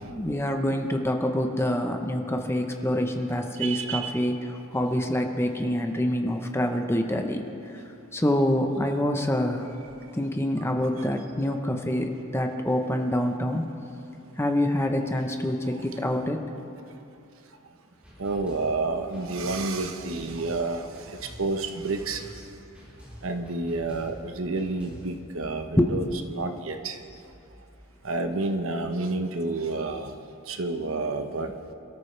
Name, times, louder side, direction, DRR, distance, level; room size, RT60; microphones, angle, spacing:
voice 1, 0.1-7.8 8.1-9.7 10.1-13.7 14.4-16.4 25.7-26.2, left 1 dB, 10° left, 4 dB, 0.9 m, -26 dB
voice 2, 3.6-4.1 18.2-22.4 23.2-26.0 26.3-27.0 28.0-30.1 30.5-31.5, right 3 dB, 80° right, 6 dB, 1.0 m, -30 dB
sound 1, 18.0-25.2, equal, 5° right, 4.1 m, -47 dB
27.0 x 13.5 x 3.4 m, 2.7 s
head